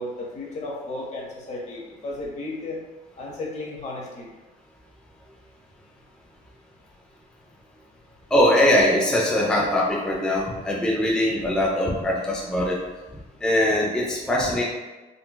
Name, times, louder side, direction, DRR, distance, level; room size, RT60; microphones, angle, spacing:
voice 1, 0.0-2.8 3.2-4.3, left 2 dB, 40° left, -2 dB, 0.8 m, -34 dB
voice 2, 8.3-12.8 13.4-14.6, left 1 dB, 5° left, -4 dB, 0.4 m, -21 dB
3.8 x 2.2 x 2.2 m, 1.2 s
cardioid pair, 110°, 17 cm